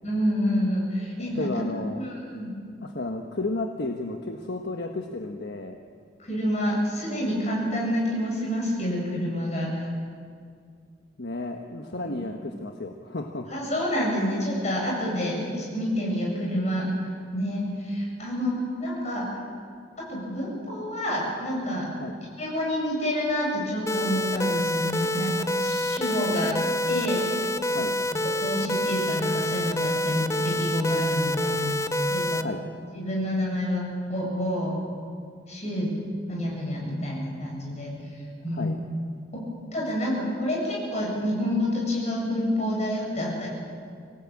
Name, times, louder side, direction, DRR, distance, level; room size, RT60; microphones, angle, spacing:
voice 1, 0.0-1.6 2.0-2.5 6.2-9.9 11.9-12.1 13.5-16.9 17.3-19.4 20.0-21.9 22.4-26.6 26.9-27.2 27.8-27.9 28.1-31.7 32.1-32.4 32.9-33.8 34.1-34.7 35.5-35.9 36.3-38.0 38.4-38.7 39.3-39.4 39.7-43.5, equal, 35° left, -2 dB, 7.8 m, -28 dB
voice 2, 1.3-2.0 2.8-5.8 11.2-13.5 22.0-22.1 27.6-28.0 32.3-32.6 38.5-38.8, left 2 dB, 60° left, 3 dB, 1.3 m, -32 dB
sound 1, 23.9-32.4, left 1 dB, 15° left, 0.7 m, -27 dB
26.0 x 17.5 x 8.8 m, 2.1 s
head